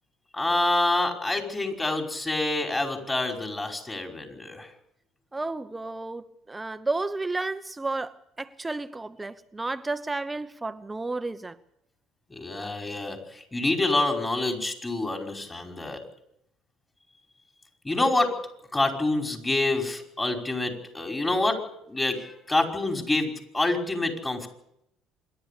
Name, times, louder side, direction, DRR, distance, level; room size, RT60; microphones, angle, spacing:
voice 1, 0.3-4.7 12.3-16.0 17.8-18.3 18.7-21.6 21.9-24.5, left 2 dB, 20° left, 5.3 m, -27 dB
voice 2, 5.3-11.6, right 3 dB, 15° right, 1.0 m, -32 dB
26.0 x 11.5 x 8.6 m
supercardioid pair, 75°, 0 cm